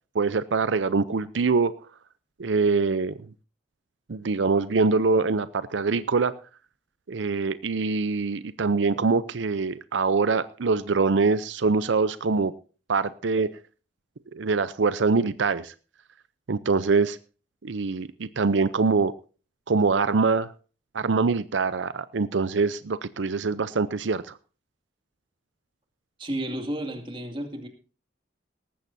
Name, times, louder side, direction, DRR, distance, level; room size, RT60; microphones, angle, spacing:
voice 1, 0.1-1.7 2.4-3.1 4.1-6.3 7.1-12.5 12.9-13.5 14.3-15.7 16.5-17.2 17.6-19.1 19.7-20.5 20.9-24.4, right 4 dB, 85° right, 15 dB, 0.6 m, -24 dB
voice 2, 26.2-27.7, right 1 dB, 25° right, 5 dB, 2.3 m, -32 dB
18.5 x 14.5 x 2.7 m, 0.36 s
head